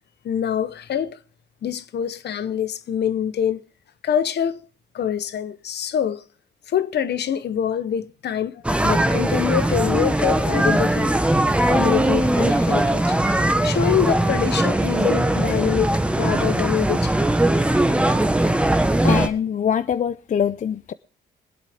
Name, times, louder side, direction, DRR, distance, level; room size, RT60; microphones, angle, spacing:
voice 1, 0.2-1.2 1.6-3.6 4.0-4.7 4.9-6.2 6.7-11.1 11.7-13.2 13.6-17.1, left 9 dB, 55° left, 0.8 m, -25 dB
sound 1, 8.6-19.3, right 1 dB, 5° right, 1.1 m, -20 dB
voice 2, 19.0-20.9, left 8 dB, 40° left, 0.5 m, -23 dB
22.5 x 8.2 x 3.5 m
cardioid pair, 90°, 20 cm